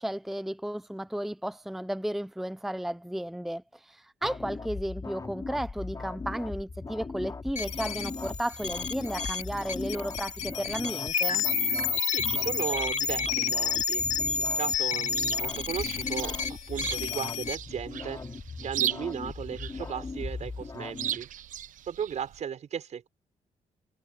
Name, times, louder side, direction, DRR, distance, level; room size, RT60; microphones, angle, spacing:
voice 1, 0.0-11.4, right 1 dB, ahead, 0.6 m, -34 dB
sound 1, 4.2-21.2, left 4 dB, 25° left, 4.0 m, -39 dB
sound 2, 7.6-17.5, left 5 dB, 60° left, 2.6 m, -30 dB
voice 2, 12.1-14.1 14.4-16.3 16.7-18.2 18.6-21.3 21.9-23.1, right 8 dB, 60° right, 6.1 m, -36 dB
Chirp tweet, 14.8-22.4, right 11 dB, 80° right, 1.0 m, -38 dB
cardioid pair, 115°, 13 cm